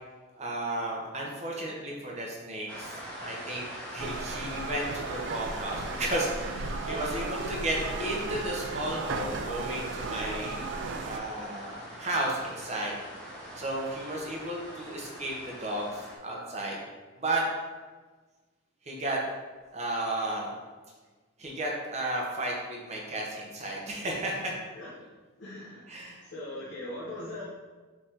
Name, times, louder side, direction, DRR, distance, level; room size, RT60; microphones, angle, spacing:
voice 1, 0.4-3.0 3.2-10.6 11.0-13.0 13.6-16.8 17.2-17.4 18.9-19.2 19.7-20.5 21.4-24.5 25.9-26.2, right 1 dB, 35° right, -2 dB, 0.8 m, -33 dB
sound 1, 2.7-16.2, equal, 5° left, 0.8 m, -43 dB
sound 2, 4.0-11.2, right 3 dB, 60° right, 0.3 m, -36 dB
voice 2, 25.4-26.0 26.2-27.4, left 1 dB, 65° left, -7 dB, 0.9 m, -40 dB
5.4 x 3.3 x 2.9 m, 1.3 s
head